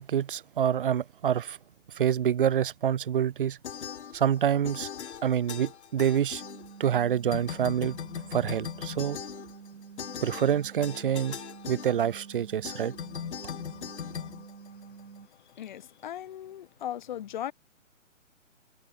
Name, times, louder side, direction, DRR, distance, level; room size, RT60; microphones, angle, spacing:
voice 1, 0.0-1.6 1.9-3.6 4.1-4.9 5.2-6.4 6.8-8.0 8.3-9.2 10.2-11.4 11.7-12.9, right 9 dB, 40° right, 0.8 m, -27 dB
sound 1, 3.6-4.4 4.6-7.0 7.3-15.2, left 8 dB, 55° left, 4.3 m, -40 dB
sound 2, 6.4-15.3, right 7 dB, 75° right, 1.9 m, -48 dB
voice 2, 15.3-17.5, left 11 dB, 35° left, 1.0 m, -38 dB
hypercardioid pair, 160°, 40 cm